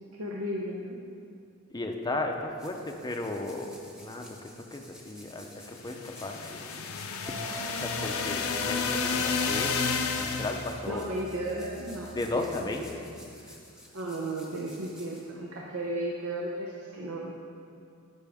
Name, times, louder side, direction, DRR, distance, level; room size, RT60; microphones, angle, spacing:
voice 1, 0.2-1.0 9.1-9.2 10.9-12.5 13.0-13.1 13.9-17.3, right 1 dB, 75° right, -2 dB, 0.8 m, -34 dB
voice 2, 1.7-6.8 7.2-9.8 10.1-11.0 12.1-13.1 13.4-13.6, left 2 dB, 20° left, 3 dB, 0.6 m, -35 dB
Scratching fast, 2.3-15.9, left 1 dB, 5° right, 1.1 m, -53 dB
sound 1, 5.8-10.8, left 5 dB, 70° left, 0.6 m, -31 dB
sound 2, 7.3-12.8, left 1 dB, 30° right, 1.0 m, -42 dB
13.0 x 6.2 x 3.5 m, 2.4 s
head